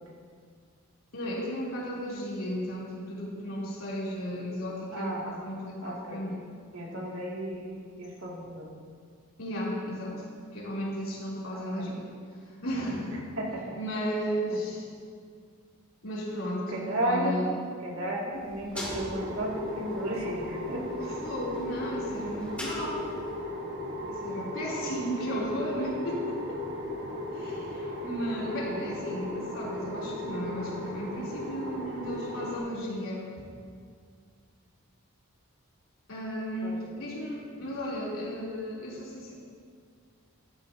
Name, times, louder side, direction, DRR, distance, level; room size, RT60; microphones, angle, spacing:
voice 1, 1.1-6.5 9.4-12.0 12.6-13.2 13.7-14.9 16.0-17.5 21.0-23.1 24.1-26.7 27.3-33.5 36.1-39.3, equal, 70° left, -6 dB, 3.1 m, -34 dB
voice 2, 4.9-5.2 5.8-6.2 6.7-8.7 11.5-11.6 13.4-13.6 16.7-17.4 17.8-20.8 36.6-36.7, right 1 dB, 65° right, -3 dB, 2.3 m, -33 dB
sound 1, 18.3-23.4, left 1 dB, 5° left, 2.4 m, -44 dB
sound 2, 18.8-32.6, left 1 dB, 50° right, 1.4 m, -36 dB
13.5 x 12.5 x 2.8 m, 2.1 s
head